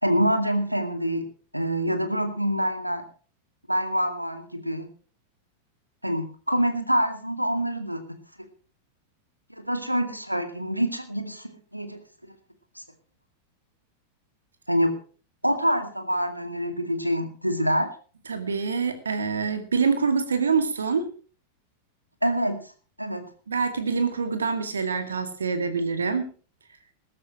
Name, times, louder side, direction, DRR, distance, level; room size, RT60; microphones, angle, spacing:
voice 1, 0.0-1.3 1.5-3.0 3.7-4.9 6.0-8.0 9.5-12.0 12.8-12.9 14.7-14.9 15.4-17.9 22.2-22.7 23.0-23.2, equal, 90° right, 7 dB, 2.2 m, -26 dB
voice 2, 18.3-21.1 23.5-26.3, right 5 dB, 70° right, 8 dB, 2.3 m, -25 dB
21.0 x 12.5 x 3.1 m, 0.39 s
figure-of-eight pair, 90°, 0 cm